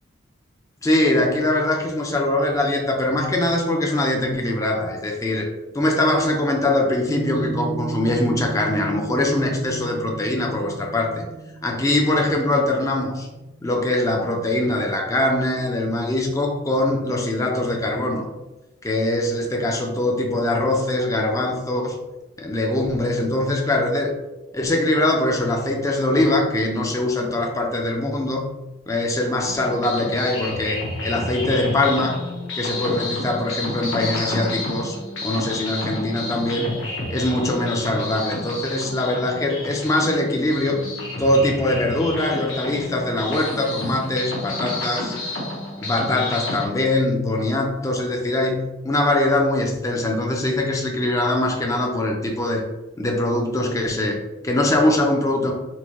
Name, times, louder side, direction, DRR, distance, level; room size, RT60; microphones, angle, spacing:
voice 1, 0.8-5.5 5.7-11.3 11.6-13.3 13.6-18.3 18.8-22.0 22.4-24.1 24.5-28.4 28.9-32.2 32.5-36.7 37.1-40.8 41.2-45.2 45.8-52.6 53.0-55.5, left 1 dB, 15° left, 0 dB, 0.4 m, -22 dB
Piano, 7.1-13.7, right 3 dB, 75° right, 0.5 m, -34 dB
sound 1, 29.5-46.7, left 2 dB, 75° left, 1.0 m, -30 dB
4.4 x 2.2 x 2.9 m, 1.0 s
head